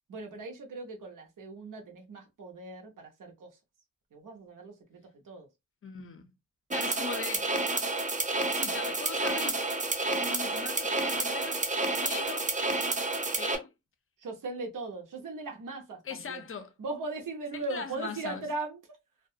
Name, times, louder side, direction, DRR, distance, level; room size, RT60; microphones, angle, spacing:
voice 1, 0.1-3.5 4.1-5.0 5.3-5.5 14.2-16.4 16.8-18.8, right 3 dB, 65° right, 0.7 m, -39 dB
voice 2, 5.8-6.3 6.7-7.5 8.5-9.6 10.2-11.6 12.0-12.5 13.4-13.7 16.0-16.7 17.5-18.5, left 6 dB, 40° left, 0.5 m, -40 dB
sound 1, 6.7-13.5, right 2 dB, 25° right, 0.4 m, -30 dB
2.3 x 2.2 x 2.6 m
wide cardioid pair, 150°, 34 cm